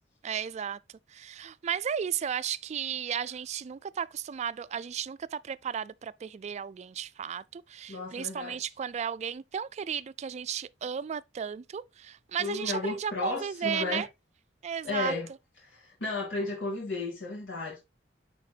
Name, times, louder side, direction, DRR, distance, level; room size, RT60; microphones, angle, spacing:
voice 1, 0.2-0.8 1.1-14.1 14.6-15.1, right 8 dB, 40° right, 0.3 m, -34 dB
voice 2, 7.9-8.7 12.4-14.1 14.8-15.3 15.6-17.8, left 3 dB, 80° left, 2.6 m, -34 dB
9.8 x 4.1 x 2.8 m
head